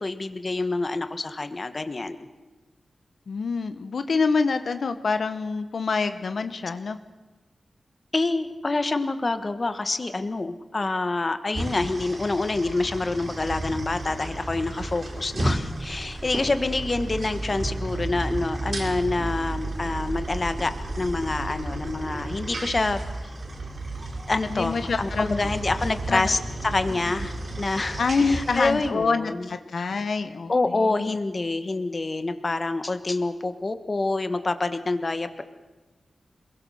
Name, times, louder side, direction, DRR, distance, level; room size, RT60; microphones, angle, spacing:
voice 1, 0.0-2.2 8.1-23.0 24.3-26.4 26.6-29.5 29.8-29.9 30.5-35.4, left 3 dB, 35° left, 10 dB, 1.3 m, -27 dB
voice 2, 3.3-7.0 24.5-25.5 26.1-26.3 28.0-31.2, left 4 dB, 65° left, 9 dB, 1.1 m, -26 dB
sound 1, 11.5-28.9, right 1 dB, 45° right, 4.2 m, -34 dB
sound 2, 15.3-22.8, right 2 dB, 30° right, 0.7 m, -36 dB
27.0 x 21.5 x 6.4 m, 1.2 s
wide cardioid pair, 140°, 0 cm